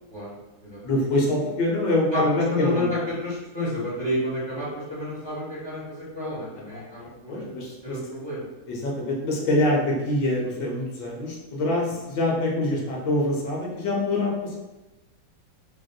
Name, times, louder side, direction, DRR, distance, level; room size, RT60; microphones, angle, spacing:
voice 1, 0.8-2.9 6.7-6.8 7.3-8.0 8.7-14.6, left 1 dB, 75° left, -2 dB, 1.3 m, -25 dB
voice 2, 2.1-7.5 7.8-8.5, left 1 dB, 35° right, -9 dB, 1.1 m, -30 dB
3.4 x 2.5 x 2.2 m, 1.1 s
omnidirectional pair, 1.9 m